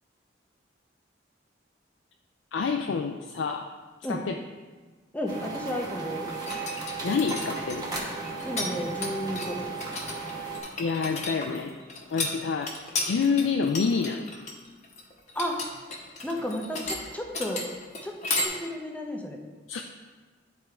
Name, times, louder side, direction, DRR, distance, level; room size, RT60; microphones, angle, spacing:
voice 1, 2.5-3.7 4.1-4.3 7.0-7.9 10.8-11.8 12.1-12.7 13.0-14.3 19.7-19.8, left 5 dB, 80° left, 4 dB, 0.4 m, -27 dB
voice 2, 5.1-6.3 8.4-9.6 15.3-15.6 16.2-17.6 18.0-18.2 18.4-19.4, left 1 dB, 10° left, 1 dB, 0.6 m, -32 dB
sound 1, 5.3-10.6, right 4 dB, 20° right, 0.9 m, -35 dB
sound 2, 6.3-8.7 8.9-18.5, left 3 dB, 35° left, 1.0 m, -33 dB
9.3 x 3.6 x 4.4 m, 1.4 s
head